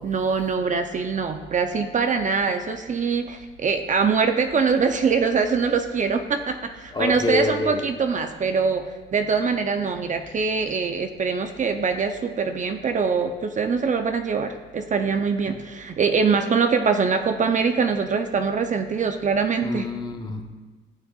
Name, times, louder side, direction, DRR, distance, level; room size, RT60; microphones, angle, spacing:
voice 1, 0.0-19.9, right 5 dB, 40° right, 7 dB, 0.6 m, -23 dB
voice 2, 6.9-7.9 15.5-15.6 19.6-20.4, left 2 dB, 20° left, 4 dB, 0.9 m, -26 dB
15.0 x 6.1 x 2.4 m, 1.3 s
cardioid pair, 90°, 20 cm